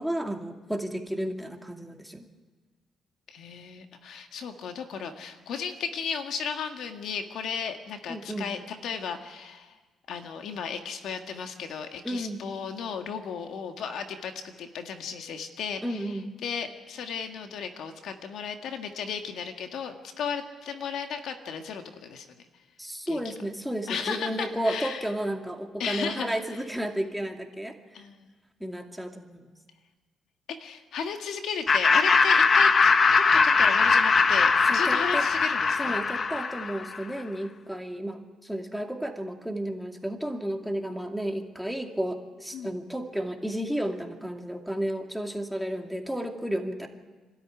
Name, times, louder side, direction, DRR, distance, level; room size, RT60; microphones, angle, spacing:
voice 1, 0.0-2.3 8.1-8.5 12.0-12.4 15.8-16.4 22.8-27.8 28.6-29.5 34.7-35.3 35.8-46.9, right 1 dB, ahead, 2 dB, 2.4 m, -32 dB
voice 2, 3.3-9.8 10.1-22.3 23.1-23.3 23.9-25.1 25.8-26.6 27.9-28.3 30.5-32.9 33.2-36.0 42.5-42.7, left 6 dB, 75° left, 5 dB, 1.9 m, -35 dB
Laughter, 31.7-37.0, left 4 dB, 40° left, 1.0 m, -21 dB
27.0 x 13.0 x 9.8 m, 1.3 s
cardioid pair, 90°, 0 cm